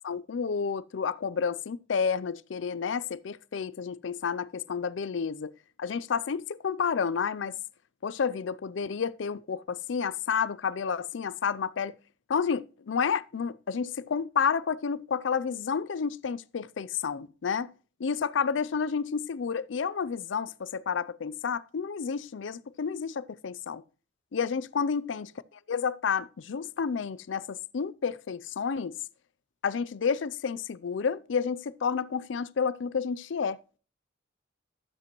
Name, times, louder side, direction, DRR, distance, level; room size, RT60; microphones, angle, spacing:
voice 1, 0.0-5.5 5.8-7.5 8.0-11.9 12.3-17.7 18.0-23.8 24.3-28.9 29.6-33.8, left 6 dB, 85° left, 0.5 m, -30 dB
12.0 x 7.5 x 3.0 m
head